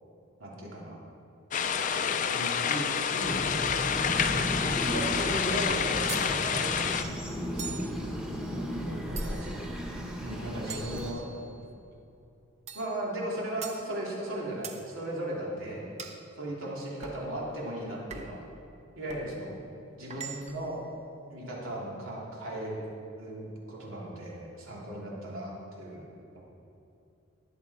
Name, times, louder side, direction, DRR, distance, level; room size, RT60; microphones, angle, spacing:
voice 1, 0.4-1.0 1.9-3.4 4.3-7.9 9.1-9.5 10.2-11.2 12.7-15.9 16.4-18.4 19.0-19.5 20.0-20.8 21.3-22.8 23.2-26.1, right 1 dB, 85° right, -4 dB, 3.1 m, -37 dB
sound 1, 1.5-7.0, left 7 dB, 40° left, 0.4 m, -28 dB
sound 2, 3.2-11.1, equal, 5° right, 1.1 m, -35 dB
Full strike pack, 6.1-6.3 7.6-7.9 9.2-9.6 10.7-11.6 12.7-12.9 13.6-13.8 14.6-14.8 16.0-16.2 17.0-17.2 18.1-18.4 19.1-19.3 20.1-20.7, right 6 dB, 35° right, 0.8 m, -42 dB
voice 2, 8.5-9.3 9.6-9.8 10.2-11.9 16.6-16.9, equal, 50° right, 4 dB, 1.2 m, -47 dB
18.5 x 7.4 x 4.3 m, 2.8 s
head